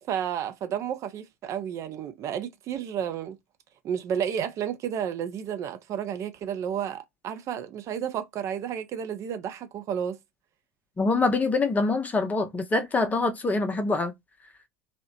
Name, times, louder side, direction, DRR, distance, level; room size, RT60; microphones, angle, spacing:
voice 1, 0.1-3.4 3.8-10.2, right 9 dB, 40° right, 0.5 m, -31 dB
voice 2, 11.0-14.1, left 3 dB, 20° left, 0.6 m, -25 dB
2.7 x 2.0 x 2.6 m
figure-of-eight pair, 70°, 8 cm